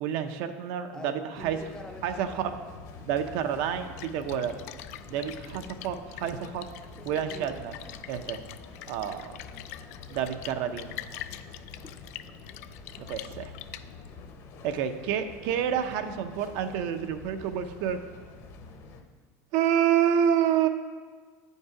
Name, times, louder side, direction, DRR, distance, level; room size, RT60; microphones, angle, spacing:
voice 1, 0.0-1.6 2.0-2.5 3.1-4.6 5.1-6.7 7.1-7.7 8.1-8.4 8.9-9.3 10.1-11.0 13.0-13.5 14.6-18.0 19.5-20.7, right 9 dB, 55° right, 8 dB, 0.5 m, -28 dB
voice 2, 0.9-2.7 7.0-7.6 9.3-9.9, left 2 dB, 10° left, 4 dB, 0.5 m, -46 dB
sound 1, 1.4-19.0, left 4 dB, 40° left, 0.8 m, -47 dB
Splash splatter, 3.7-14.3, left 12 dB, 90° left, 0.4 m, -44 dB
9.1 x 5.4 x 4.8 m, 1.5 s
cardioid pair, 175°, 8 cm